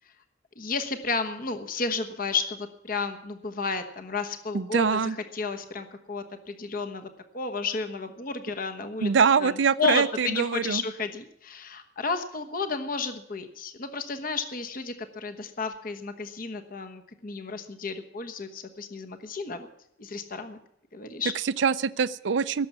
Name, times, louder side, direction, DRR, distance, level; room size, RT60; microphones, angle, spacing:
voice 1, 0.5-9.1 9.4-19.7 20.0-20.6 20.9-21.3, left 4 dB, 50° left, 7 dB, 1.1 m, -32 dB
voice 2, 4.5-5.2 9.0-10.8 21.4-22.7, right 6 dB, 75° right, 16 dB, 0.5 m, -24 dB
17.0 x 7.2 x 9.4 m, 0.79 s
head